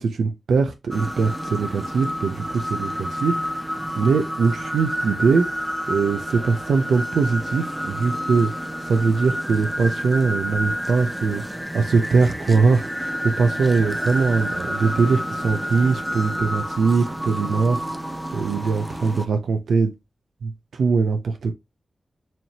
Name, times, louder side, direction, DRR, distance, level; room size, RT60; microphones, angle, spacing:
voice 1, 0.0-3.6 4.0-5.5 5.9-19.9 20.4-21.5, right 4 dB, 90° right, 0.4 m, -22 dB
sound 1, 0.9-19.3, equal, 5° right, 0.5 m, -29 dB
4.3 x 2.7 x 2.8 m
cardioid pair, 45°, 0 cm